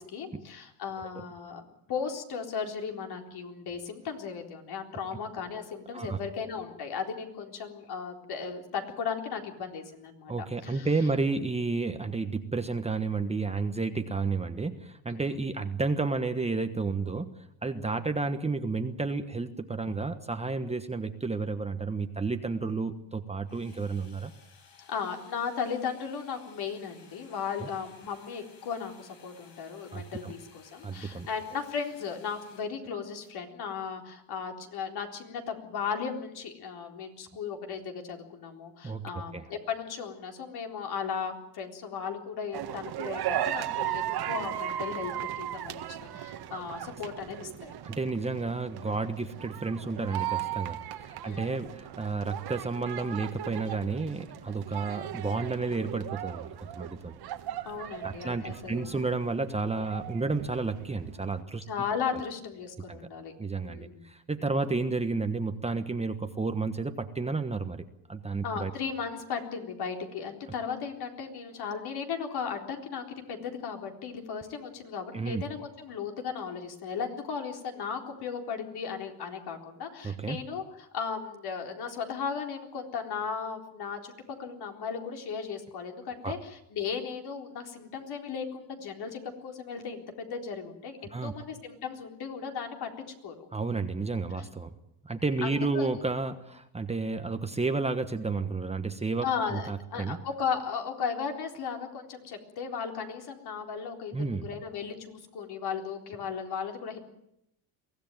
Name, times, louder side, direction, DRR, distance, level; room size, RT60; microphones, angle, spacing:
voice 1, 0.0-1.6 1.9-10.3 10.6-10.9 15.1-15.2 24.9-47.8 51.2-51.6 57.7-58.9 61.7-63.3 63.6-64.0 64.4-64.5 68.4-84.1 84.4-92.9 93.2-93.5 95.4-95.9 99.2-107.0, left 6 dB, 55° left, 3 dB, 4.0 m, -36 dB
voice 2, 10.3-24.3 29.9-30.3 30.8-31.3 38.8-39.4 47.8-57.2 58.0-61.6 62.9-63.1 63.4-67.8 68.1-68.7 75.1-75.4 80.0-80.4 86.2-86.3 91.1-91.3 93.5-94.7 95.0-100.2 104.1-104.5, right 3 dB, 15° right, 7 dB, 1.3 m, -31 dB
sound 1, 23.4-32.6, left 5 dB, 90° left, 7.1 m, -57 dB
sound 2, 42.5-61.4, right 12 dB, 55° right, 1.8 m, -37 dB
23.5 x 16.0 x 9.2 m, 0.79 s
cardioid pair, 115°, 46 cm